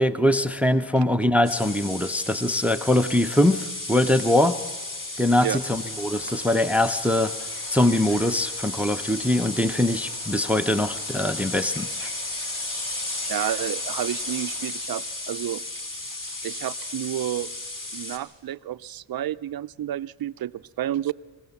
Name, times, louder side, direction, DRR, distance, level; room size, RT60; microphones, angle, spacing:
voice 1, 0.0-4.6 5.2-7.3 7.7-12.1, left 1 dB, 5° right, 12 dB, 0.6 m, -22 dB
sound 1, 1.4-18.2, left 2 dB, 40° left, 2.6 m, -33 dB
sound 2, 5.5-14.7, left 3 dB, 80° left, 2.2 m, -47 dB
voice 2, 13.3-15.6 16.4-17.5 17.9-21.1, right 12 dB, 45° right, 16 dB, 0.5 m, -30 dB
23.0 x 16.5 x 7.2 m, 1.5 s
cardioid pair, 85°, 50 cm